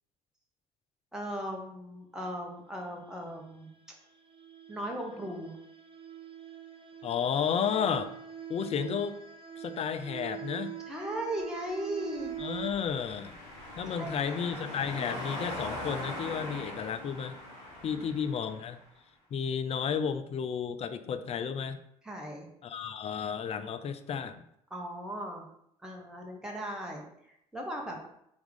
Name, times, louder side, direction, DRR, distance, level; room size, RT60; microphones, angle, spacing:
voice 1, 1.1-3.7 4.7-5.6 10.9-12.3 13.9-14.4 18.0-18.1 22.0-22.5 24.7-25.4 25.8-27.0 27.5-28.0, right 1 dB, 5° right, 0 dB, 1.0 m, -37 dB
sound 1, 3.7-12.7, right 9 dB, 30° right, 0.6 m, -43 dB
voice 2, 7.0-8.1 8.5-9.2 9.6-10.7 12.4-13.4 13.8-17.4 17.8-18.8 19.3-21.8 22.6-24.4, left 7 dB, 35° left, 10 dB, 0.4 m, -32 dB
sound 2, 12.0-18.8, left 1 dB, 75° left, 1.3 m, -41 dB
3.5 x 3.0 x 3.7 m, 0.75 s
figure-of-eight pair, 55°, 18 cm